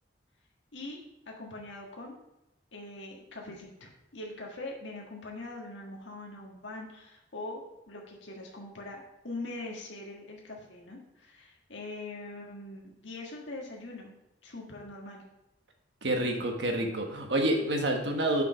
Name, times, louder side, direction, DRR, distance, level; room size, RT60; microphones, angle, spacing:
voice 1, 1.3-2.2 2.7-14.2 14.4-15.2 16.2-16.4, left 2 dB, 80° left, -1 dB, 1.6 m, -42 dB
voice 2, 16.0-18.4, right 1 dB, 70° right, 2 dB, 1.4 m, -28 dB
6.7 x 5.6 x 5.2 m, 0.92 s
head